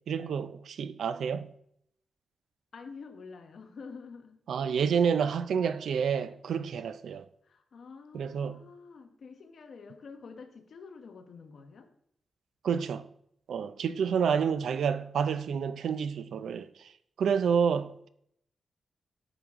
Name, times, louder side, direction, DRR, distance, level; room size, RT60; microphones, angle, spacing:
voice 1, 0.1-1.5 4.5-7.3 8.1-8.6 12.6-13.1 13.5-16.9 17.2-18.1, right 7 dB, 75° right, 0.4 m, -29 dB
voice 2, 2.7-4.4 5.1-5.4 5.6-5.8 7.4-11.9 14.4-15.0, left 5 dB, 50° left, 1.0 m, -48 dB
10.0 x 6.4 x 3.6 m
wide cardioid pair, 160°, 0 cm